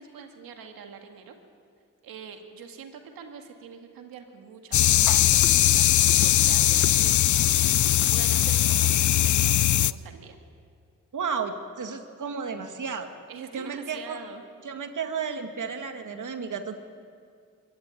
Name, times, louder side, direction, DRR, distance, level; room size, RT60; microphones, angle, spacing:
voice 1, 0.0-1.4 2.0-7.5 7.8-10.4 13.3-14.4, right 6 dB, 85° right, 4 dB, 2.1 m, -44 dB
sound 1, 4.7-9.9, left 12 dB, 60° left, 0.6 m, -20 dB
voice 2, 11.1-13.1 13.5-14.2 14.6-16.8, right 6 dB, 60° right, 6 dB, 2.2 m, -33 dB
23.0 x 13.5 x 9.3 m, 2.2 s
supercardioid pair, 50°, 34 cm